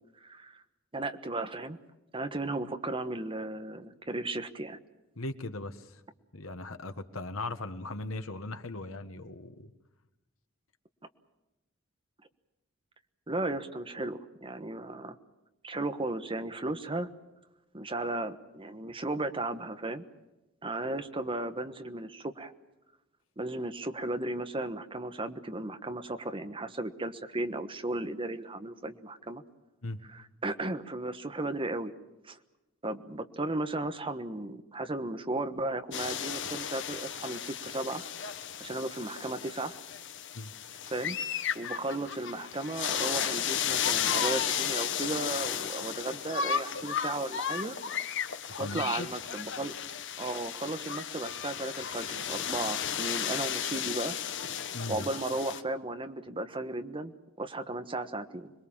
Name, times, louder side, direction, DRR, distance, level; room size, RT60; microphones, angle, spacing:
voice 1, 0.2-0.6 0.9-1.8 2.1-4.8 13.3-15.1 15.6-17.1 17.7-20.0 20.6-22.5 23.4-29.4 30.1-31.9 32.2-32.4 32.8-38.0 38.6-39.8 40.9-41.2 41.5-47.7 48.6-49.7 50.2-54.1 54.9-58.5, right 2 dB, 25° right, 9 dB, 1.3 m, -35 dB
voice 2, 5.2-6.0 6.3-9.7 29.8-30.0 40.3-40.5 48.5-49.1 54.7-55.1, left 2 dB, 90° left, 8 dB, 1.6 m, -38 dB
sound 1, 35.9-55.6, left 8 dB, 65° left, 1.3 m, -34 dB
26.5 x 21.5 x 7.3 m, 1.0 s
head